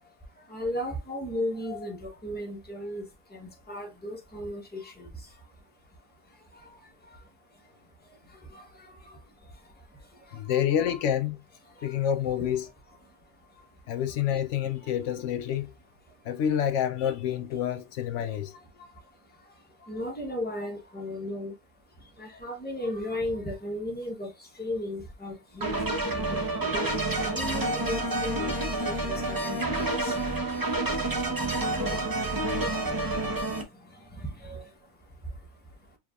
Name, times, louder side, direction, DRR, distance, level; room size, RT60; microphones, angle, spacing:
voice 1, 0.5-3.1 3.3-5.1 6.5-6.7 8.5-8.6 10.5-10.6 11.8-11.9 12.3-12.4 19.9-21.5 22.2-24.3 24.6-26.9 27.2-30.1 34.1-34.6, left 1 dB, 10° left, 1.0 m, -35 dB
voice 2, 10.3-11.4 11.8-12.7 13.9-15.7 16.3-18.5 31.8-32.2, left 9 dB, 80° left, 0.9 m, -28 dB
sound 1, 25.6-33.6, right 2 dB, 20° right, 0.7 m, -29 dB
4.8 x 3.3 x 2.4 m
omnidirectional pair, 1.2 m